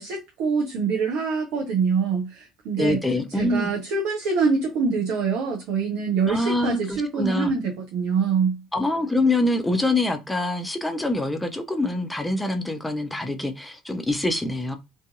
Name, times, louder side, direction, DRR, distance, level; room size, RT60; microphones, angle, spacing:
voice 1, 0.0-3.0 3.3-8.6, right 5 dB, 60° right, 0.5 m, -25 dB
voice 2, 2.8-3.7 6.3-7.5 8.7-14.8, left 2 dB, 10° left, 0.5 m, -25 dB
2.5 x 2.3 x 2.5 m
figure-of-eight pair, 55°, 0 cm